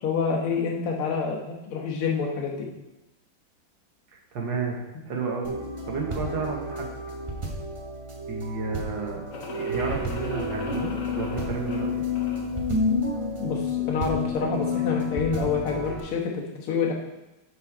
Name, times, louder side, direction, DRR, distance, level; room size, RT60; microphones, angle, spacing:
voice 1, 0.0-2.7 13.4-16.9, left 5 dB, 90° left, 0 dB, 2.1 m, -27 dB
voice 2, 4.3-4.8 5.1-5.5 5.9-6.9 8.3-10.9 11.2-12.0, right 4 dB, 65° right, 0 dB, 1.8 m, -31 dB
sound 1, 5.4-16.0, left 3 dB, 35° right, 0.5 m, -30 dB
sound 2, 9.3-12.6, left 2 dB, 60° left, 1.6 m, -39 dB
6.6 x 6.4 x 4.6 m, 0.98 s
omnidirectional pair, 2.3 m